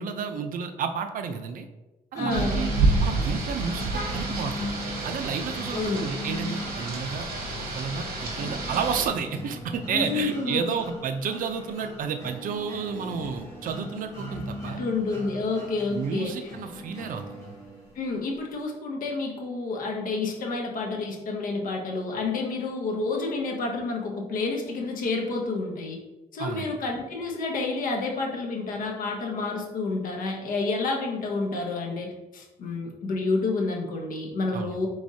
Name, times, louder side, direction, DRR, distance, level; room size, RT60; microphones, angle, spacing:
voice 1, 0.0-1.7 2.1-2.7 3.0-3.9 4.1-4.7 5.0-7.3 7.5-14.8 15.9-17.2 26.4-26.7 34.5-34.8, right 6 dB, 60° right, 6 dB, 0.5 m, -31 dB
voice 2, 2.1-2.6 5.7-6.1 9.9-10.8 14.7-16.5 17.9-26.0 26.3-34.9, left 3 dB, 60° left, 0 dB, 0.9 m, -29 dB
sound 1, 2.2-18.1, left 1 dB, 20° left, 1.1 m, -38 dB
Rain, 2.3-9.1, right 3 dB, 75° right, 1.0 m, -29 dB
4.8 x 3.4 x 2.7 m, 1.0 s
cardioid pair, 160°, 16 cm